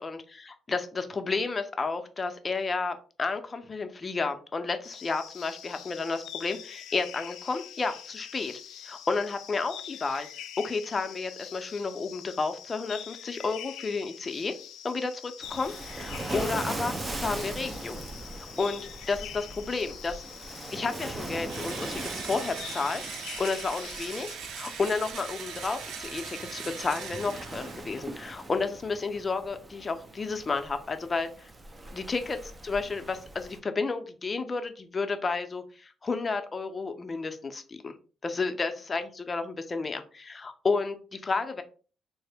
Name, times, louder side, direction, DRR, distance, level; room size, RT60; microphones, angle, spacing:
voice 1, 0.0-8.5 8.8-10.3 10.6-14.5 14.8-18.0 18.4-20.2 20.7-23.1 23.4-31.3 31.9-32.4 32.6-37.9 38.2-41.6, left 4 dB, 30° left, 7 dB, 0.5 m, -31 dB
sound 1, 4.8-24.4, left 10 dB, 85° left, 0.3 m, -44 dB
Waves surf, 15.4-33.6, right 2 dB, 25° right, 0.5 m, -40 dB
Engine / Drill, 21.5-28.1, right 6 dB, 80° right, 0.5 m, -40 dB
3.6 x 2.0 x 3.3 m, 0.37 s
cardioid pair, 90°, 0 cm